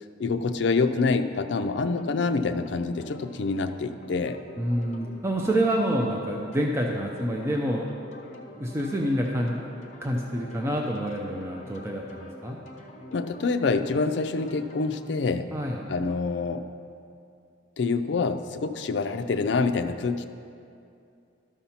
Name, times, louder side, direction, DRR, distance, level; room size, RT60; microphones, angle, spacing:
voice 1, 0.0-4.4 13.1-15.5 15.9-16.7 17.8-20.3, left 4 dB, 60° left, 9 dB, 0.4 m, -26 dB
sound 1, 1.6-15.0, left 2 dB, 35° left, 0.9 m, -46 dB
voice 2, 4.6-7.9 8.6-9.6 10.0-12.6 15.5-15.8, right 1 dB, 15° right, -1 dB, 0.5 m, -27 dB
12.0 x 4.3 x 5.7 m, 2.5 s
head